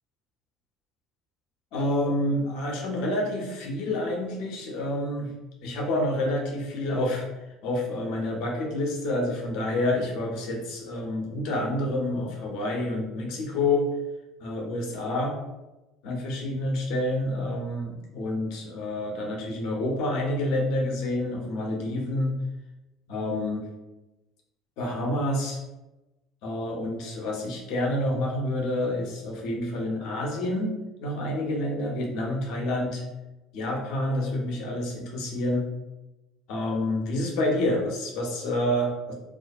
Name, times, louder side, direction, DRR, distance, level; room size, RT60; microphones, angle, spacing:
voice 1, 1.7-5.3 5.6-7.3 7.6-13.9 14.4-15.4 16.0-22.4 23.1-23.6 24.8-25.6 26.4-30.7 31.0-33.0 33.5-35.7 36.5-39.1, left 1 dB, 60° left, -1 dB, 0.6 m, -28 dB
2.4 x 2.2 x 2.5 m, 1.0 s
figure-of-eight pair, 60°, 0 cm